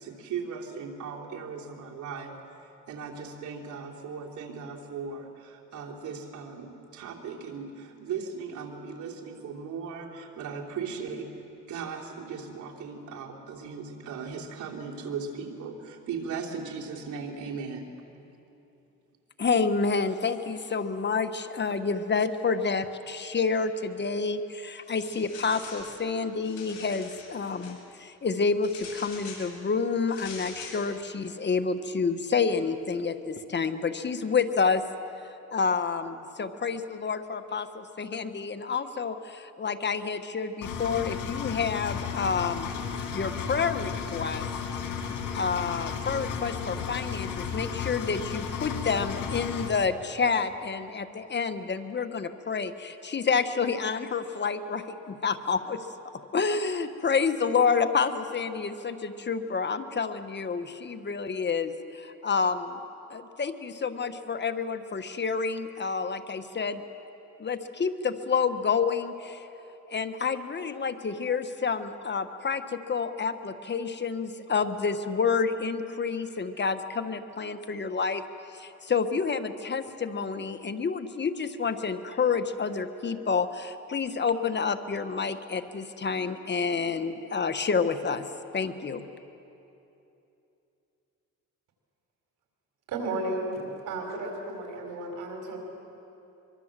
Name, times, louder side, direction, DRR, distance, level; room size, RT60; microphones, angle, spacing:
voice 1, 0.0-2.4 2.9-11.3 11.7-17.9, right 5 dB, 75° right, -1 dB, 3.5 m, -37 dB
voice 2, 19.4-34.8 35.5-42.7 43.1-44.4 45.3-55.8 56.3-62.8 63.1-66.8 67.4-69.5 69.9-78.2 78.5-88.3 88.5-89.0, left 5 dB, 35° left, 9 dB, 1.4 m, -29 dB
sound 1, 24.8-25.9 26.3-27.8 28.6-29.5 30.1-30.8, left 5 dB, 70° left, 6.5 m, -44 dB
Engine, 40.6-49.7, left 7 dB, 90° left, 2.5 m, -34 dB
voice 3, 92.9-95.6, right 2 dB, 90° right, 2 dB, 4.9 m, -33 dB
24.0 x 24.0 x 7.6 m, 2.9 s
cardioid pair, 90°, 30 cm